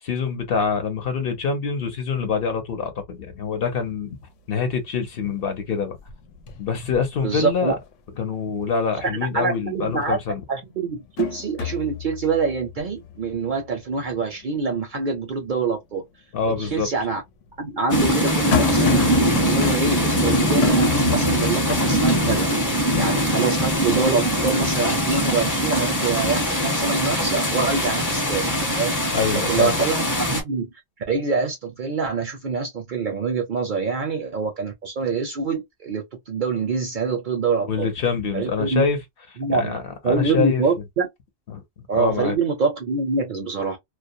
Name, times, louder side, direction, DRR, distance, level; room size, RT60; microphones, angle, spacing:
voice 1, 0.0-4.2 4.5-6.0 6.6-7.7 8.2-10.4 16.3-16.9 22.9-23.1 29.1-29.8 37.6-39.0 39.5-40.6 41.5-41.6 41.9-42.4, left 5 dB, 55° left, 0.8 m, -25 dB
sound 1, 3.2-3.3 3.7-4.2 4.6-5.4 5.7-7.9 8.3-8.4 9.9-10.0 10.5-15.6 16.0-16.1 17.0-22.4, left 10 dB, 90° left, 1.0 m, -31 dB
voice 2, 7.2-7.8 9.3-10.2 10.5-16.0 16.6-17.2 17.6-19.1 19.4-22.5 23.0-29.0 29.3-30.7 31.1-37.9 38.3-38.9 39.4-39.7 40.0-41.1 41.9-43.8, right 4 dB, 55° right, 0.6 m, -25 dB
sound 2, 17.9-30.4, equal, 20° left, 0.7 m, -21 dB
2.3 x 2.1 x 2.5 m
omnidirectional pair, 1.2 m